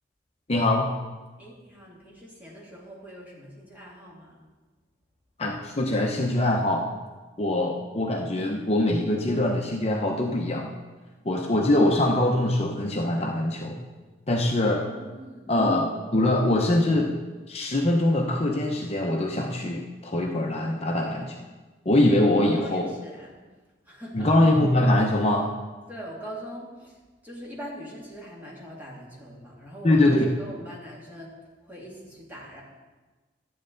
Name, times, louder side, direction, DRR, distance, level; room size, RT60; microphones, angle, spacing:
voice 1, 0.5-0.9 5.4-6.8 7.4-10.7 11.2-13.8 14.3-14.8 15.5-17.1 17.5-21.4 21.8-22.9 24.1-25.5 29.8-30.3, left 1 dB, 35° left, 1 dB, 0.8 m, -23 dB
voice 2, 1.4-4.4 14.9-15.6 22.4-23.4 23.9-24.3 25.9-27.0 27.2-31.4 31.6-32.6, equal, 10° right, -5 dB, 2.4 m, -42 dB
12.5 x 8.6 x 3.9 m, 1.3 s
head